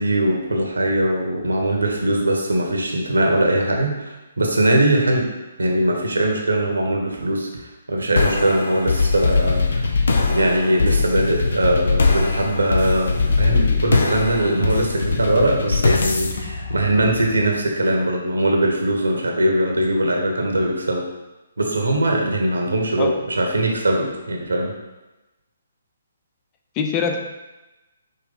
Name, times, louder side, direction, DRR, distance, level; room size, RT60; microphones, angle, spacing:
voice 1, 0.0-5.3 5.6-7.5 7.9-9.9 10.3-21.0 21.6-24.7, right 1 dB, 75° right, 1 dB, 1.3 m, -21 dB
sound 1, 8.2-17.6, left 4 dB, 65° left, 0.8 m, -21 dB
voice 2, 13.2-13.8 23.0-23.2 26.8-27.2, left 5 dB, 25° left, 3 dB, 0.6 m, -25 dB
5.5 x 3.4 x 5.4 m, 1.1 s
figure-of-eight pair, 135°, 0 cm